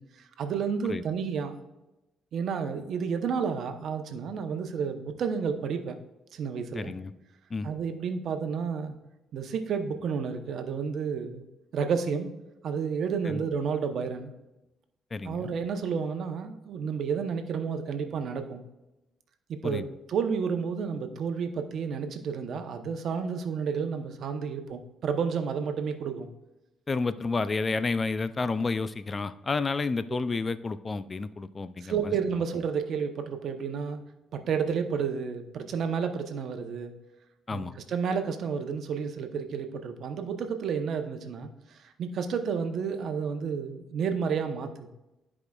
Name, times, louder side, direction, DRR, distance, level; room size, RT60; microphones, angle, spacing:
voice 1, 0.0-1.6 2.3-6.0 6.3-6.9 7.6-8.9 9.3-11.4 11.7-12.3 12.6-14.3 15.2-18.6 19.5-26.3 30.1-30.2 31.8-34.0 34.3-36.9 37.5-44.9, right 6 dB, 65° right, 7 dB, 0.8 m, -31 dB
voice 2, 6.7-7.1 7.5-7.7 13.3-13.4 15.1-15.5 19.6-19.8 26.9-32.1 37.5-37.7, left 4 dB, 30° left, 14 dB, 0.3 m, -30 dB
12.5 x 4.9 x 2.4 m, 0.95 s
cardioid pair, 90°, 0 cm